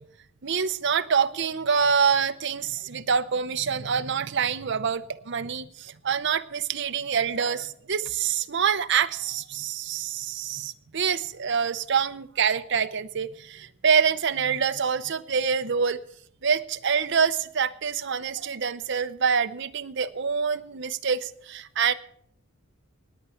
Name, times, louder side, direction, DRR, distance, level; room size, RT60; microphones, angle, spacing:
voice 1, 0.4-16.0 16.4-21.9, right 6 dB, 60° right, 10 dB, 0.7 m, -26 dB
17.5 x 9.8 x 5.7 m, 0.65 s
head